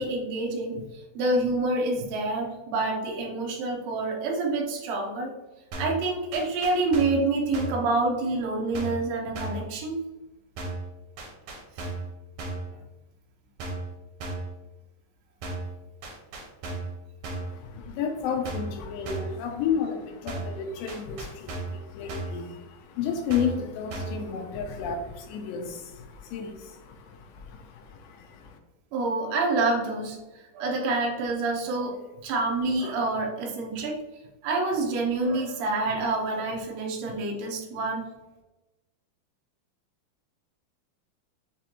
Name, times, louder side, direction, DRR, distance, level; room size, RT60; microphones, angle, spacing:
voice 1, 0.0-5.3 5.8-10.0 28.9-30.2 30.5-34.0 34.4-38.1, right 2 dB, 90° right, 0 dB, 1.5 m, -27 dB
sound 1, 5.7-6.0 6.3-7.2 7.5-7.9 8.7-9.1 9.3-9.7 10.6-10.9 11.2-12.1 12.4-12.7 13.6-13.9 14.2-14.5 15.4-15.7 16.0-17.0 17.2-17.6 18.4-18.8 19.1-19.4 20.3-20.6 20.9-21.8 22.1-22.4 23.3-23.6 23.9-24.2, right 2 dB, 75° right, 1.7 m, -35 dB
voice 2, 17.3-28.6, left 6 dB, 80° left, 4 dB, 2.3 m, -32 dB
6.1 x 2.5 x 2.8 m, 1.0 s
omnidirectional pair, 4.1 m